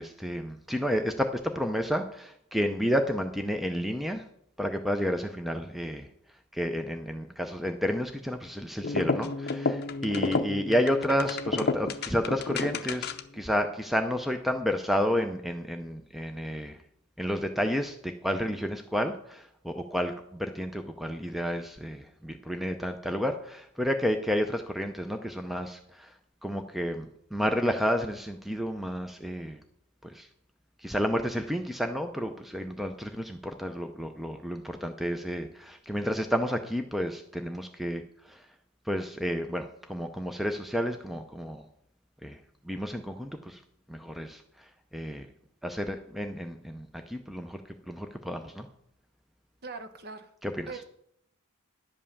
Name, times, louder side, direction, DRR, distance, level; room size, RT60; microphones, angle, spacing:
voice 1, 0.0-4.2 4.6-6.1 6.5-16.8 17.2-26.1 26.4-29.6 30.0-30.3 30.8-38.5 38.9-41.7 42.2-42.4 42.6-43.6 43.9-45.3 45.6-47.6 47.9-48.7 50.4-50.7, equal, ahead, 6 dB, 0.5 m, -31 dB
sound 1, 8.8-13.4, left 3 dB, 45° left, 0.6 m, -31 dB
voice 2, 49.6-50.3 50.7-50.8, right 4 dB, 45° right, 8 dB, 0.9 m, -40 dB
11.0 x 5.4 x 7.0 m, 0.72 s
head